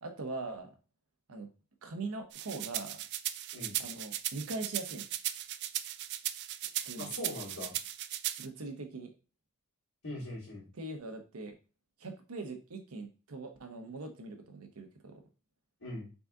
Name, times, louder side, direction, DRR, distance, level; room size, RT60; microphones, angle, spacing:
voice 1, 0.0-0.7 1.3-1.5 1.8-3.0 3.8-5.1 6.6-7.1 8.4-9.1 10.8-11.5 12.0-15.2, right 3 dB, 85° right, 4 dB, 0.9 m, -41 dB
sound 1, 2.3-8.5, right 13 dB, 50° right, 0.3 m, -37 dB
voice 2, 7.0-7.8 10.0-10.7 15.8-16.1, left 1 dB, 90° left, -11 dB, 2.2 m, -41 dB
4.0 x 3.5 x 3.6 m, 0.33 s
head